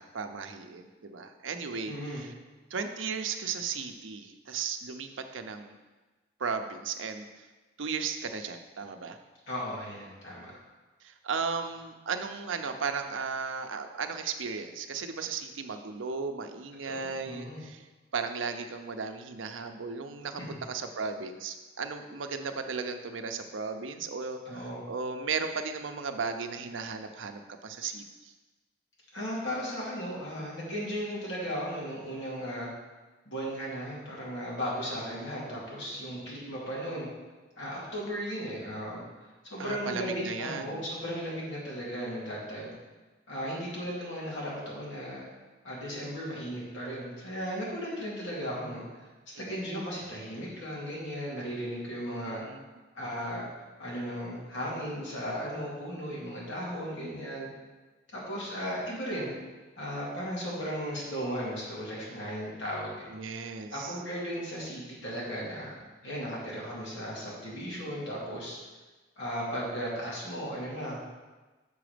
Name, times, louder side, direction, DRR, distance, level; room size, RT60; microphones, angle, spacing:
voice 1, 0.0-2.3 2.7-5.8 6.4-7.3 7.8-9.2 11.0-17.8 18.1-28.3 39.6-40.8 49.4-49.5 52.2-52.6 63.1-63.9, right 5 dB, 85° right, 6 dB, 0.6 m, -35 dB
voice 2, 1.9-2.2 9.5-10.6 16.8-17.6 20.4-20.5 24.5-24.8 29.1-32.7 33.3-37.1 37.6-39.0 39.5-42.7 43.3-45.2 45.6-49.1 49.4-52.4 52.9-53.5 53.8-57.5 58.1-59.3 59.8-63.0 63.7-65.8 66.0-68.6 69.2-71.1, equal, 70° left, -5 dB, 2.4 m, -36 dB
6.9 x 4.9 x 5.1 m, 1.2 s
head